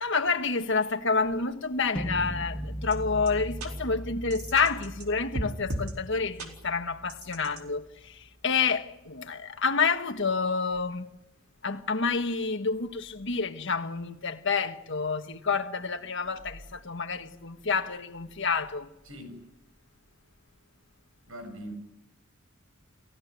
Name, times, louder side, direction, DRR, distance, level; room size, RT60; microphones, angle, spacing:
voice 1, 0.0-8.2 8.4-11.1 11.6-18.9, left 4 dB, 60° left, 1.6 m, -29 dB
sound 1, 2.0-8.0, equal, 5° left, 1.2 m, -39 dB
sound 2, 2.9-3.0 3.3-3.4 3.6-3.7 4.3-5.1 5.3-5.9 6.4-6.5 7.1-7.6, right 1 dB, 85° right, 4.2 m, -35 dB
voice 2, 19.0-19.5 21.3-21.7, equal, 70° right, 7.2 m, -41 dB
30.0 x 16.0 x 9.6 m
head